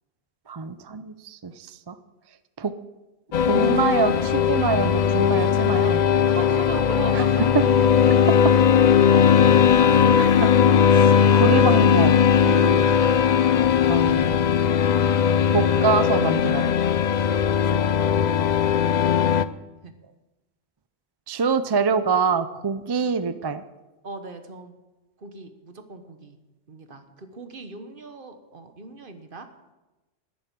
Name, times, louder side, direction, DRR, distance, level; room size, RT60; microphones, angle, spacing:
voice 1, 0.5-2.0 2.6-2.7 3.4-6.0 7.1-7.2 8.3-8.5 10.2-10.5 10.9-12.1 12.4-12.9 13.9-14.3 15.5-16.7 21.3-23.6, right 5 dB, 35° right, 12 dB, 0.4 m, -25 dB
sound 1, 3.3-19.4, left 8 dB, 55° left, 0.5 m, -18 dB
voice 2, 6.1-7.9 8.9-9.1 11.1-11.7 13.5-13.7 17.3-18.2 19.2-19.5 19.8-19.9 24.0-24.8 25.2-26.4 26.7-29.5, right 3 dB, 50° right, 8 dB, 1.4 m, -39 dB
10.5 x 10.5 x 7.5 m, 1.1 s
omnidirectional pair, 1.1 m